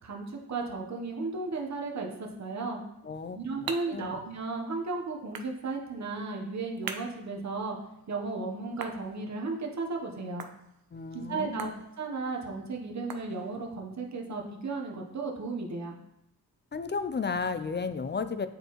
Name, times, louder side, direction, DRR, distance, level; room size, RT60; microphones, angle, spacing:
voice 1, 0.0-2.8 3.3-7.8 8.1-10.5 11.1-16.0, right 3 dB, 45° right, 0 dB, 1.0 m, -35 dB
sound 1, 2.9-13.8, right 6 dB, 60° right, 0.6 m, -47 dB
voice 2, 3.0-4.2 10.9-11.8 16.7-18.5, left 5 dB, 30° left, 11 dB, 0.4 m, -34 dB
7.7 x 4.5 x 3.0 m, 0.84 s
cardioid pair, 75°, 39 cm